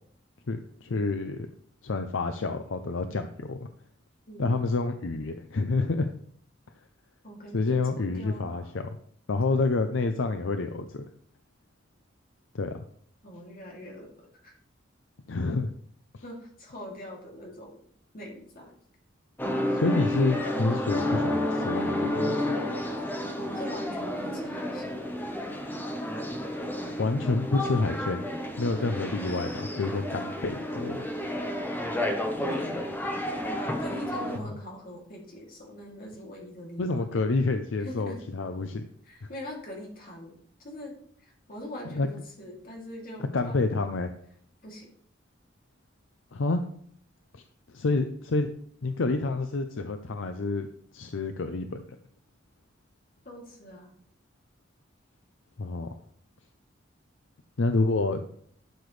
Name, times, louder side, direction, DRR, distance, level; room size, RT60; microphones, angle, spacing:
voice 1, 0.5-1.5 1.8-3.7 4.4-6.1 7.5-8.9 9.3-11.1 12.5-12.8 15.3-15.7 16.1-16.2 19.7-22.4 27.0-28.3 28.6-31.0 36.8-38.8 39.2-39.3 41.9-42.1 43.3-44.1 46.3-46.6 47.3-47.4 47.7-48.5 48.8-50.7 50.9-51.8 55.6-55.9 57.6-58.2, left 3 dB, 75° left, 8 dB, 0.6 m, -28 dB
voice 2, 7.2-8.7 9.4-9.7 13.2-14.5 16.2-17.8 18.1-18.7 23.4-24.9 28.7-28.9 32.4-32.9 33.6-37.0 37.8-38.2 39.0-40.9 41.2-43.6 44.6-44.9 53.2-53.9, left 1 dB, 50° left, -1 dB, 2.8 m, -42 dB
sound 1, 19.4-34.4, left 1 dB, 10° left, 1.1 m, -31 dB
12.0 x 6.8 x 3.3 m, 0.62 s
head